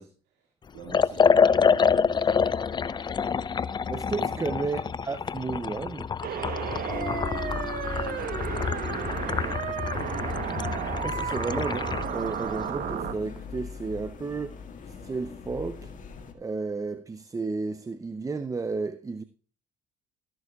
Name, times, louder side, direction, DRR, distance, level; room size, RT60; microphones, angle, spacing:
voice 1, 0.0-2.5 3.1-3.3 4.2-4.3 6.8-9.8 11.0-11.2, right 5 dB, 75° right, 2.1 m, -47 dB
Liquid, 0.9-12.1, left 6 dB, 25° left, 0.4 m, -27 dB
voice 2, 3.9-6.1 11.0-11.8 12.1-15.9 16.3-19.2, right 4 dB, 20° right, 0.6 m, -32 dB
sound 1, 6.2-13.1, right 8 dB, 55° right, 1.1 m, -33 dB
sound 2, 6.9-16.3, left 5 dB, 50° left, 1.9 m, -39 dB
14.5 x 11.0 x 2.4 m
supercardioid pair, 80°, 18 cm